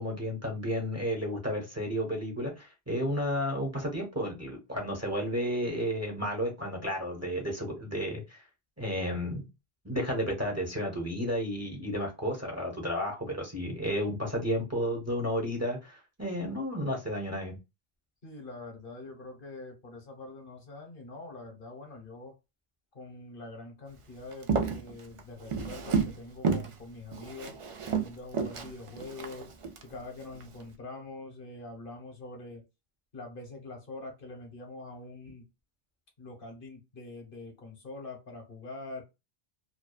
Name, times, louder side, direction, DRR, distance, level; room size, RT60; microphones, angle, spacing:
voice 1, 0.0-8.4 8.8-9.5 9.8-17.6, equal, 20° right, 1 dB, 0.7 m, -32 dB
voice 2, 18.2-22.3 22.9-27.6 28.0-29.5 29.8-32.6 33.1-35.5 36.2-39.0, left 2 dB, 60° left, 3 dB, 1.1 m, -44 dB
Walk footsteps, 24.3-26.2 26.4-26.7 27.1-29.8 30.3-30.6, right 5 dB, 60° right, 0.3 m, -31 dB
2.7 x 2.2 x 2.2 m, 0.25 s
omnidirectional pair, 1.1 m